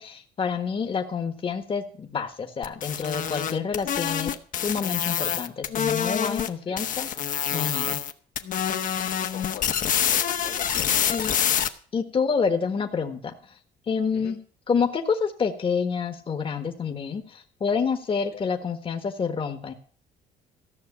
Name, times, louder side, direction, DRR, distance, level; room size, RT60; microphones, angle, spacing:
voice 1, 0.0-4.3 4.6-7.1 7.5-8.0 11.1-11.3 11.9-13.3 13.9-14.4 14.7-19.7, left 5 dB, 30° left, 6 dB, 1.4 m, -28 dB
sound 1, 2.6-6.5 6.8-8.1 8.4-11.7, left 9 dB, 50° left, 1.1 m, -26 dB
voice 2, 9.3-11.3 14.1-14.3 18.3-18.4, left 10 dB, 70° left, 3 dB, 2.0 m, -43 dB
14.5 x 6.3 x 8.4 m, 0.43 s
cardioid pair, 110°, 17 cm